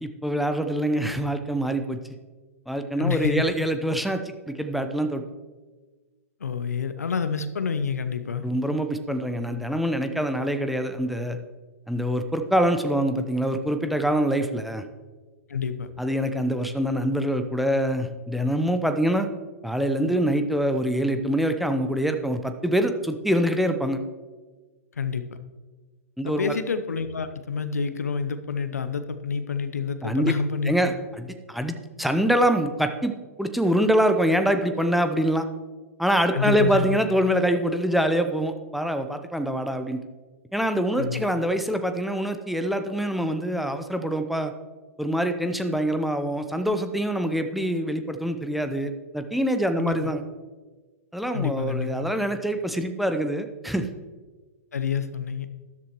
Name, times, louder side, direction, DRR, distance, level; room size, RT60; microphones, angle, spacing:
voice 1, 0.0-2.0 2.7-4.2 4.5-5.2 8.4-11.4 11.9-14.8 16.0-19.3 19.6-24.0 26.2-26.6 30.0-30.3 30.7-33.1 33.4-35.4 36.0-40.0 40.5-44.5 45.0-50.2 51.1-53.9, right 1 dB, ahead, 7 dB, 0.7 m, -25 dB
voice 2, 3.0-3.4 6.4-8.5 15.5-15.9 25.0-25.2 26.2-30.9 36.3-37.0 41.0-41.3 49.8-50.1 51.3-52.1 54.7-55.5, left 6 dB, 75° left, 11 dB, 0.8 m, -28 dB
13.0 x 11.0 x 3.1 m, 1.3 s
figure-of-eight pair, 110°, 8 cm